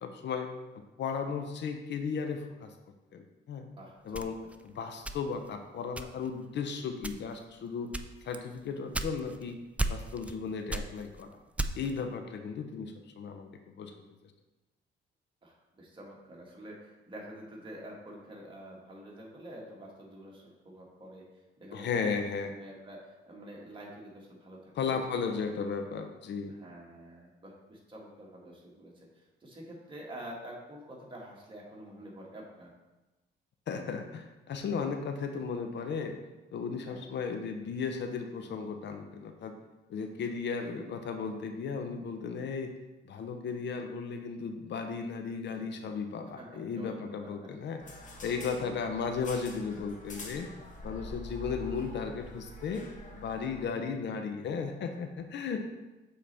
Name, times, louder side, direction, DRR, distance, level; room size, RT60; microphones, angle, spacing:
voice 1, 0.0-0.5 1.0-2.7 3.1-3.7 4.0-4.4 4.6-7.9 8.2-9.6 9.9-11.4 11.7-13.9 21.7-22.5 24.8-26.5 33.7-36.2 36.5-39.5 39.9-42.7 43.0-47.8 48.2-50.5 50.8-55.7, left 5 dB, 65° left, 6 dB, 0.7 m, -35 dB
voice 2, 3.8-4.5 15.4-21.2 21.6-22.1 22.5-25.7 26.5-32.7 36.8-37.1 46.4-47.3 47.9-48.1 48.5-48.8, right 1 dB, 25° right, -3 dB, 1.8 m, -48 dB
sound 1, 4.1-5.5 6.0-6.4 7.0-7.4 7.9-9.4 9.8-10.4 10.7-12.0, right 2 dB, 5° right, 0.3 m, -35 dB
sound 2, 47.8-53.7, left 2 dB, 40° left, 1.1 m, -45 dB
7.5 x 4.2 x 3.4 m, 1.1 s
cardioid pair, 90°, 20 cm